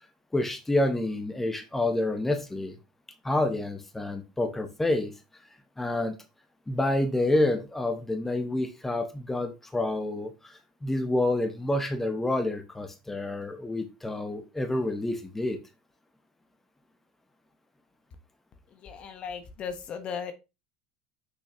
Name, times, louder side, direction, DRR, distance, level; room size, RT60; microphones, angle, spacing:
voice 1, 0.3-2.8 3.2-5.1 5.8-6.1 6.7-15.6, left 1 dB, 10° left, 1.2 m, -28 dB
voice 2, 18.7-20.3, left 6 dB, 45° left, 1.3 m, -37 dB
6.6 x 5.6 x 2.9 m
hypercardioid pair, 85°, 3 cm